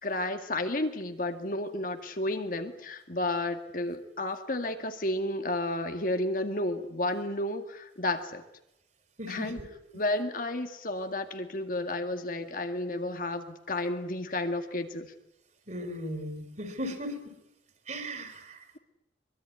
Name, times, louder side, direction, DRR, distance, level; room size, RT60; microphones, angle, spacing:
voice 1, 0.0-8.4 9.3-9.6 9.9-15.1, left 1 dB, 50° left, 6 dB, 2.0 m, -32 dB
voice 2, 9.2-9.6 15.7-17.2 17.9-18.8, equal, 40° right, 7 dB, 4.6 m, -37 dB
23.5 x 23.5 x 9.7 m, 0.83 s
head